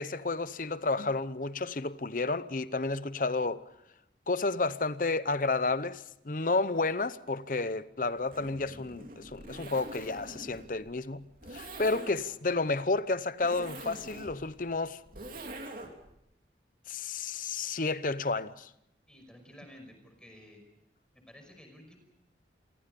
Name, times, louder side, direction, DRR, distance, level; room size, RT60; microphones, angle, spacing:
voice 1, 0.0-3.7 4.3-11.3 11.5-15.0 16.9-18.7, left 3 dB, 45° left, 0.8 m, -31 dB
Zipper (clothing), 8.2-16.1, right 2 dB, 50° right, 3.1 m, -45 dB
voice 2, 19.1-20.6 21.1-22.0, equal, 5° left, 5.6 m, -52 dB
28.0 x 23.5 x 5.3 m
head